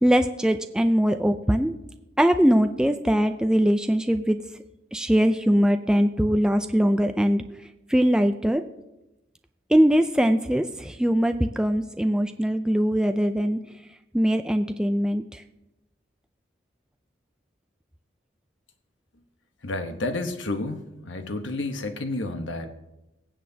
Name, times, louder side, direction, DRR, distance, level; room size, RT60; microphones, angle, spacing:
voice 1, 0.0-1.7 2.2-4.4 4.9-7.4 7.9-8.6 9.7-13.6 14.1-15.4, equal, 5° right, 7 dB, 0.3 m, -21 dB
voice 2, 19.6-22.7, left 2 dB, 80° left, 7 dB, 1.0 m, -30 dB
22.5 x 7.6 x 2.8 m, 0.94 s
head